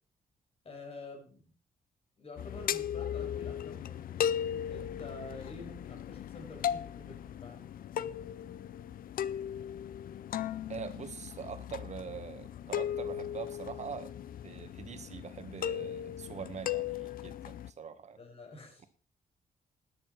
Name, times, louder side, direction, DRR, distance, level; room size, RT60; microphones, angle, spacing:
voice 1, 0.6-1.5 2.2-4.3 4.6-7.6 18.2-18.9, left 2 dB, 40° left, 3 dB, 5.3 m, -48 dB
sound 1, 2.4-17.7, left 9 dB, 70° left, 0.6 m, -37 dB
voice 2, 10.7-14.1 14.4-18.2, right 6 dB, 50° right, 10 dB, 1.7 m, -43 dB
13.5 x 10.5 x 4.7 m, 0.39 s
cardioid pair, 115°, 15 cm